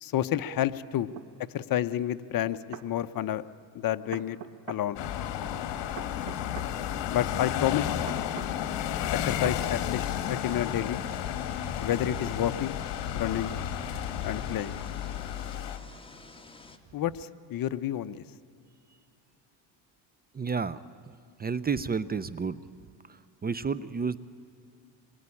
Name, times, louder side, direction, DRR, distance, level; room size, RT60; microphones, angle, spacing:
voice 1, 0.0-1.1 1.5-3.4 3.7-4.4 4.7-5.0 7.1-8.0 9.1-11.0 11.8-12.8 13.1-13.5 14.2-14.8 16.9-18.2, left 11 dB, 45° left, 13 dB, 0.9 m, -30 dB
sound 1, 1.2-1.3 2.4-2.9 4.1-4.9 6.0-6.7 8.1-8.5 9.4-9.6, right 11 dB, 75° right, 1.8 m, -42 dB
sound 2, 5.0-15.8, left 10 dB, 65° left, 2.0 m, -32 dB
sound 3, 9.4-16.8, left 3 dB, 10° left, 2.0 m, -50 dB
voice 2, 20.3-20.8 21.1-21.2 21.4-22.6 23.1-24.2, right 5 dB, 20° right, 17 dB, 0.7 m, -31 dB
26.5 x 22.5 x 9.9 m, 2.4 s
cardioid pair, 105°, 46 cm